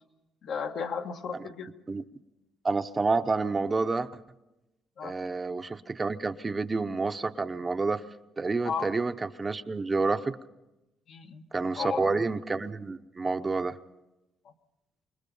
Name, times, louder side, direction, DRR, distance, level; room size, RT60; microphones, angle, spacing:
voice 1, 0.4-1.7 5.0-5.1 8.6-8.9 11.1-11.4 11.7-12.1 14.4-14.5, left 6 dB, 70° left, 4 dB, 1.6 m, -34 dB
voice 2, 2.6-4.1 5.0-8.0 8.4-10.4 11.5-13.7, right 3 dB, 25° right, 9 dB, 0.8 m, -29 dB
25.5 x 21.0 x 5.4 m, 0.99 s
cardioid pair, 100°, 0 cm